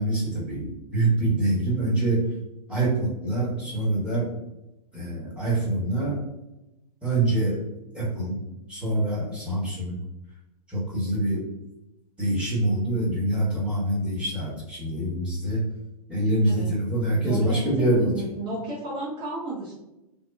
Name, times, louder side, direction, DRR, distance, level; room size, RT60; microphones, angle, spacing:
voice 1, 0.0-2.3 2.7-4.3 4.9-6.2 7.0-7.6 7.9-8.4 8.7-10.0 10.7-11.4 12.2-15.6 16.1-18.1, right 2 dB, 5° right, -8 dB, 1.1 m, -25 dB
voice 2, 17.1-19.7, right 1 dB, 20° right, -5 dB, 0.7 m, -33 dB
2.8 x 2.1 x 2.2 m, 0.95 s
hypercardioid pair, 110°, 20 cm